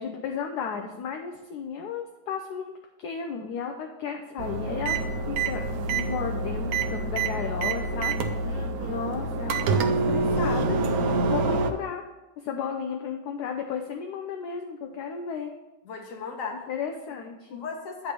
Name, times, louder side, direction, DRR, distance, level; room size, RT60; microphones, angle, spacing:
voice 1, 0.0-5.0 5.3-5.6 5.9-12.1 12.4-15.5 16.7-17.6, left 6 dB, 70° left, 4 dB, 1.1 m, -34 dB
sound 1, 4.4-11.7, right 3 dB, 65° right, 1.0 m, -26 dB
voice 2, 8.4-9.0 15.9-16.7 17.5-18.1, left 5 dB, 50° left, 4 dB, 1.2 m, -37 dB
8.7 x 3.3 x 6.7 m, 1.1 s
omnidirectional pair, 2.0 m